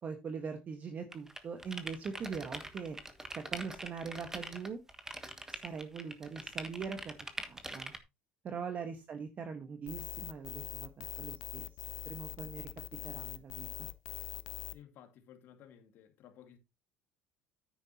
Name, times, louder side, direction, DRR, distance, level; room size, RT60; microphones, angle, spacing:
voice 1, 0.0-3.0 3.3-4.8 5.5-7.9 8.4-11.7 12.0-12.7 13.0-13.9, right 5 dB, 40° right, 1.4 m, -42 dB
sound 1, 1.1-8.0, right 1 dB, 10° right, 1.4 m, -43 dB
sound 2, 9.9-14.7, left 19 dB, 80° left, 0.6 m, -42 dB
voice 2, 14.7-16.6, left 9 dB, 60° left, 2.2 m, -56 dB
9.8 x 9.3 x 2.9 m
supercardioid pair, 90°, 4 cm